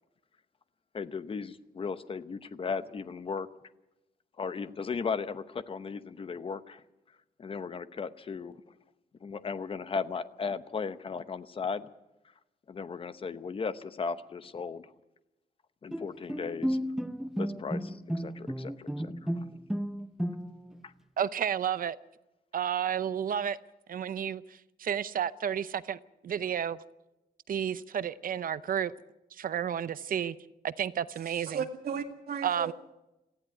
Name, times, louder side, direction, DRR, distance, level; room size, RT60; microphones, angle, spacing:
voice 1, 0.9-3.5 4.4-6.8 7.4-8.6 9.2-11.9 12.7-14.9 15.8-16.8 17.4-19.4 20.8-20.9, left 5 dB, 35° left, 0.8 m, -36 dB
Bowed string instrument, 15.9-20.8, equal, 5° right, 0.7 m, -33 dB
voice 2, 21.2-22.0 22.5-23.6 23.9-26.8 27.5-28.9 29.3-30.4 30.6-31.6 32.4-32.7, right 9 dB, 60° right, 0.7 m, -31 dB
voice 3, 31.3-32.7, right 7 dB, 75° right, 2.0 m, -35 dB
19.0 x 14.5 x 9.4 m
wide cardioid pair, 170°, 16 cm